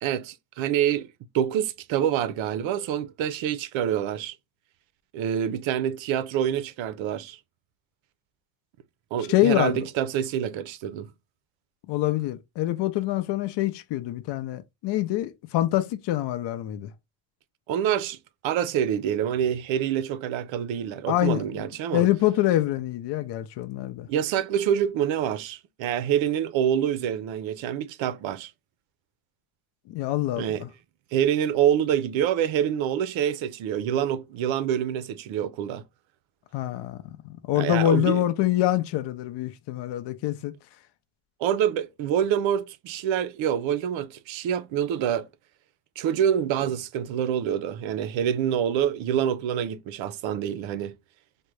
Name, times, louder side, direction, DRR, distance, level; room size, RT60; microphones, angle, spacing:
voice 1, 0.0-1.1 1.3-4.4 5.1-7.4 9.1-11.1 17.7-18.2 18.4-22.0 24.0-28.5 30.4-30.6 31.1-35.8 37.5-38.2 41.4-45.3 46.0-51.0, right 9 dB, 80° right, 0.6 m, -26 dB
voice 2, 9.3-9.8 11.9-16.9 21.1-21.4 21.9-24.1 29.9-30.7 36.5-37.2 37.4-40.5, left 14 dB, 65° left, 0.5 m, -25 dB
3.6 x 2.1 x 3.1 m
cardioid pair, 140°, 45 cm